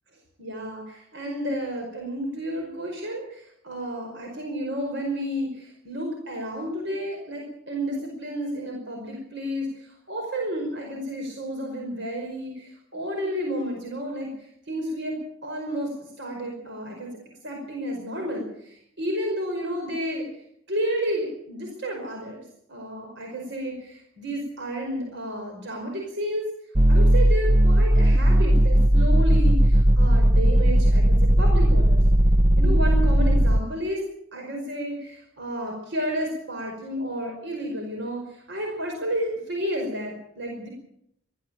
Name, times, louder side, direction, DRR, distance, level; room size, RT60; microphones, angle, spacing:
voice 1, 0.4-14.3 14.7-15.2 15.4-17.1 17.4-20.3 20.7-22.4 22.7-26.5 26.9-32.0 32.5-34.0 34.3-40.7, equal, 60° right, 1 dB, 5.2 m, -31 dB
sound 1, 26.7-33.6, equal, 30° right, 0.8 m, -17 dB
20.5 x 14.0 x 8.9 m, 0.73 s
head